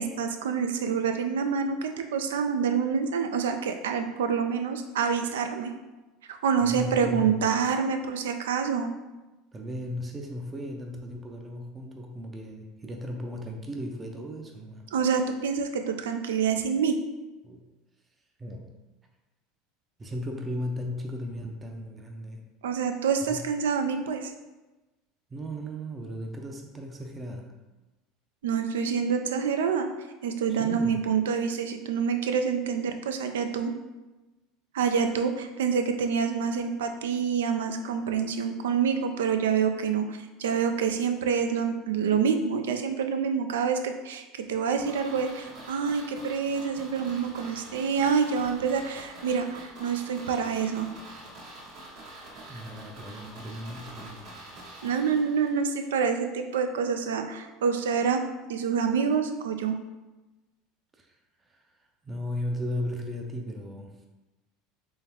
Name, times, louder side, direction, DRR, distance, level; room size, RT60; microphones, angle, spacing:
voice 1, 0.0-5.7 6.3-8.9 14.9-17.0 22.6-24.3 28.4-29.9 30.2-33.7 34.7-50.9 54.8-58.2 58.5-59.8, right 6 dB, 85° right, 6 dB, 0.4 m, -27 dB
voice 2, 6.6-7.4 9.5-14.9 17.4-17.6 18.4-18.7 20.0-22.4 23.3-23.5 25.3-27.5 30.6-31.0 52.5-54.3 60.9-61.1 61.4-61.6 62.0-64.1, equal, 25° right, 2 dB, 0.5 m, -36 dB
sound 1, 44.8-55.8 56.1-56.2, right 1 dB, 65° right, 1.4 m, -45 dB
3.6 x 3.3 x 2.9 m, 1.1 s
hypercardioid pair, 90°, 0 cm